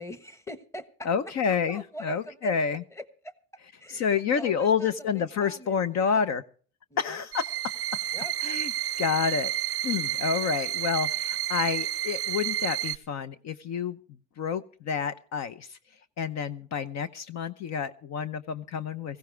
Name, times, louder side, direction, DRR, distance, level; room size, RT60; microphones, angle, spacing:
voice 1, 0.0-1.1 1.7-2.6 2.9-3.3 3.8-6.2 6.9-7.2 8.1-8.3, equal, 10° left, 11 dB, 1.3 m, -43 dB
voice 2, 1.0-2.8 3.9-6.4 7.0-7.7 8.4-8.7 9.0-9.5 9.8-14.0 14.4-15.8 16.2-19.2, left 6 dB, 50° left, 13 dB, 0.8 m, -29 dB
sound 1, 7.3-13.0, right 13 dB, 45° right, 0.6 m, -30 dB
18.0 x 16.0 x 3.4 m, 0.42 s
cardioid pair, 125°, 34 cm